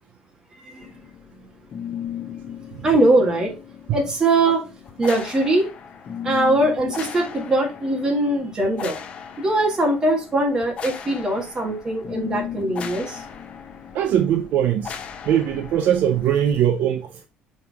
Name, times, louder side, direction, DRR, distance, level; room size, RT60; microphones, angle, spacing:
sound 1, 0.8-16.7, left 8 dB, 35° left, 0.8 m, -37 dB
voice 1, 2.8-3.5 3.9-4.7 5.0-5.7 6.2-9.0 9.4-13.2, right 2 dB, 20° right, 1.8 m, -21 dB
voice 2, 13.9-15.0 15.2-17.3, right 10 dB, 60° right, 0.6 m, -21 dB
6.3 x 3.5 x 4.8 m
cardioid pair, 165°, 3 cm